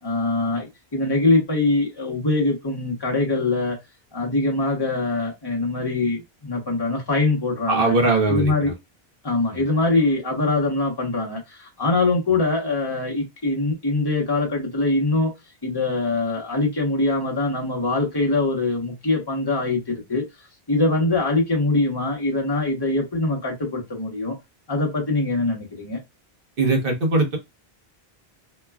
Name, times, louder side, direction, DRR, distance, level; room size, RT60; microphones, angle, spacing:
voice 1, 0.0-3.8 4.1-7.9 8.3-8.7 9.2-15.3 15.6-20.2 20.7-24.4 24.7-26.0, left 2 dB, 25° left, 1.0 m, -23 dB
voice 2, 7.7-8.5 9.5-9.6 26.6-27.4, right 3 dB, 60° right, 1.1 m, -20 dB
3.0 x 2.3 x 2.3 m
omnidirectional pair, 1.1 m